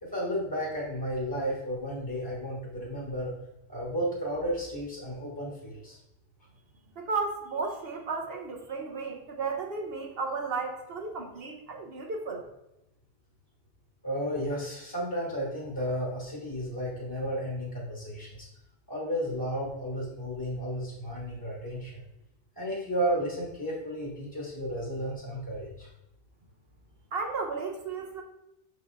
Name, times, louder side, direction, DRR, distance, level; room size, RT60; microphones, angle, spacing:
voice 1, 0.0-3.3 3.7-6.0 14.0-18.5 18.9-22.0 22.6-25.9, equal, 20° left, -4 dB, 1.5 m, -33 dB
voice 2, 7.0-12.4 27.1-28.2, right 4 dB, 70° right, 2 dB, 1.1 m, -34 dB
6.7 x 4.8 x 3.4 m, 0.89 s
omnidirectional pair, 1.0 m